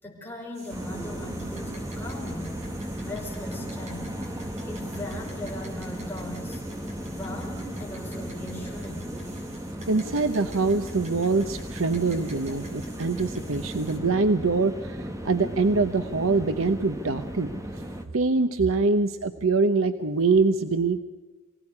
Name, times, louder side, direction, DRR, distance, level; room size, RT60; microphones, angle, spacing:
voice 1, 0.0-2.6 3.0-4.1 4.7-6.6 7.1-9.1, left 1 dB, 10° left, -2 dB, 5.5 m, -39 dB
sound 1, 0.5-14.0, right 2 dB, 35° right, 4.7 m, -49 dB
sound 2, 0.7-18.1, equal, 15° right, 1.9 m, -36 dB
voice 2, 9.9-17.6 18.1-21.0, right 3 dB, 75° right, 9 dB, 0.9 m, -24 dB
25.0 x 17.5 x 9.8 m, 1.2 s
head